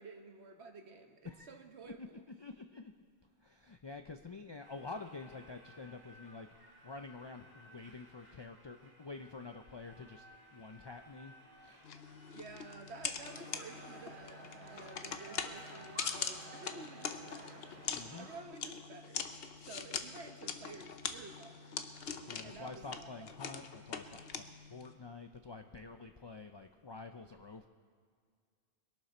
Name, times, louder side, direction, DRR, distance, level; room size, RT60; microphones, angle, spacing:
voice 1, 0.0-2.2 12.3-17.7 18.2-19.3 19.6-21.8 22.4-23.3, right 4 dB, 90° right, 6 dB, 1.4 m, -52 dB
voice 2, 1.2-1.6 1.8-2.9 3.4-6.5 6.8-11.9 17.9-18.3 22.3-27.7, left 3 dB, 40° left, 6 dB, 0.4 m, -48 dB
sound 1, 4.6-18.0, equal, 20° right, 1.4 m, -60 dB
sound 2, 11.8-24.9, left 6 dB, 70° left, 1.0 m, -43 dB
sound 3, 13.2-18.4, right 2 dB, 50° right, 1.8 m, -53 dB
22.0 x 11.5 x 4.3 m, 2.1 s
omnidirectional pair, 1.1 m